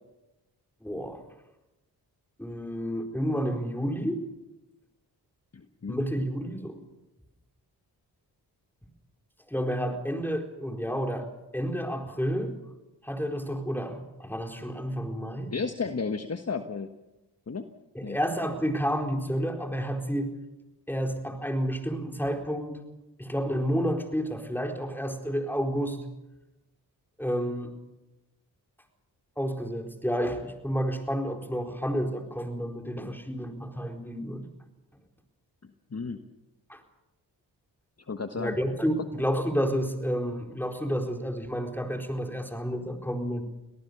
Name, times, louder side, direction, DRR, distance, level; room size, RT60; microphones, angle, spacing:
voice 1, 0.8-1.2 2.4-4.2 5.9-6.8 9.5-12.5 13.0-15.5 17.9-20.3 20.9-22.8 23.2-26.0 27.2-27.7 29.4-34.5 36.7-36.8 38.4-43.4, equal, 5° left, 4 dB, 4.4 m, -30 dB
voice 2, 5.5-6.0 15.5-16.9 17.5-17.7 18.0-18.2 35.9-36.2 38.1-38.6, left 4 dB, 35° left, 7 dB, 1.5 m, -33 dB
24.0 x 18.5 x 7.0 m, 0.99 s
supercardioid pair, 45°, 42 cm